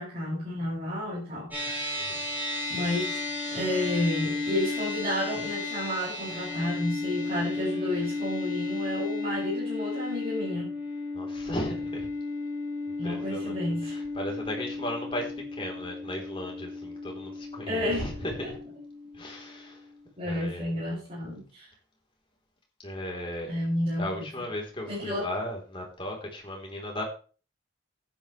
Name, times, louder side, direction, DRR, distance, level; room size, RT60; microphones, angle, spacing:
voice 1, 0.0-2.1 2.7-3.2 3.5-10.7 13.0-13.9 17.7-18.1 18.4-18.5 20.2-21.7 23.5-24.4 24.9-25.3, left 1 dB, 30° right, -8 dB, 6.6 m, -31 dB
sound 1, 1.5-20.1, left 3 dB, 10° right, 6.2 m, -34 dB
voice 2, 11.1-12.1 13.0-13.6 14.2-18.6 19.1-19.8 20.3-20.7 22.8-23.5 24.0-27.0, left 1 dB, 25° left, 0 dB, 3.8 m, -36 dB
14.0 x 10.0 x 3.3 m, 0.37 s
head